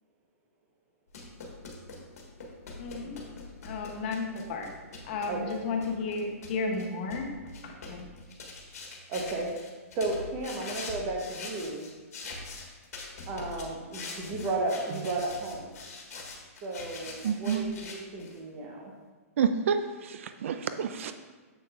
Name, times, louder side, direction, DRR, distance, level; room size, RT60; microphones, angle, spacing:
sound 1, 1.1-18.4, left 3 dB, 75° left, 1.4 m, -43 dB
voice 1, 2.8-3.2 3.6-4.7 5.0-7.3 7.6-8.1, left 4 dB, 40° left, 2 dB, 0.8 m, -33 dB
voice 2, 9.1-9.6 9.9-11.8 13.3-15.8 16.6-18.9, right 2 dB, 25° right, 1 dB, 0.9 m, -33 dB
voice 3, 17.2-17.6 19.4-21.1, right 7 dB, 60° right, 10 dB, 0.3 m, -29 dB
7.4 x 6.3 x 2.4 m, 1.4 s
hypercardioid pair, 165°, 8 cm